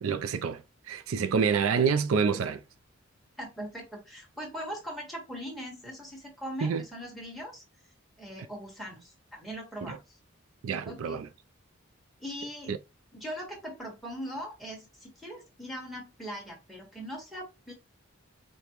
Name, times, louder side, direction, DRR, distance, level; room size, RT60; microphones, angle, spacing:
voice 1, 0.0-0.6 0.9-2.6 6.6-6.8 10.6-11.3 12.7-12.8, right 6 dB, 80° right, 0.4 m, -27 dB
voice 2, 3.4-7.6 8.2-10.2 10.8-11.3 12.2-12.7 13.1-17.7, equal, ahead, 1.4 m, -40 dB
5.1 x 2.2 x 2.9 m
head